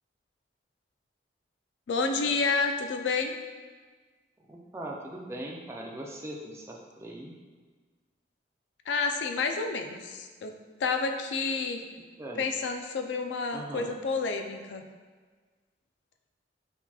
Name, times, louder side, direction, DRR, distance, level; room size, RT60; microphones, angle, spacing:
voice 1, 1.9-3.3 8.9-10.5 10.8-11.8 12.4-14.8, left 4 dB, 75° left, 5 dB, 0.4 m, -29 dB
voice 2, 4.4-7.3 12.2-12.4 13.5-13.9, right 1 dB, 15° right, -1 dB, 0.4 m, -40 dB
8.0 x 2.8 x 2.3 m, 1.5 s
head